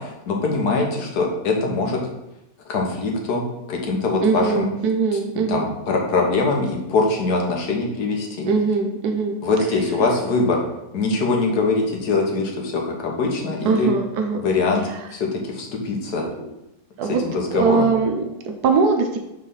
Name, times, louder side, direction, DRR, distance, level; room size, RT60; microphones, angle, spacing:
voice 1, 0.0-2.0 2.7-4.7 5.3-8.5 9.4-10.6 10.9-13.9 14.3-14.8 15.1-16.3 17.2-17.9, left 3 dB, 85° left, 0 dB, 1.6 m, -22 dB
voice 2, 4.2-5.7 8.5-9.4 13.6-14.4 14.8-15.1 16.1-16.5 17.0-17.2 17.5-19.2, right 4 dB, 80° right, 4 dB, 1.3 m, -21 dB
5.4 x 3.3 x 5.5 m, 0.92 s
omnidirectional pair, 1.6 m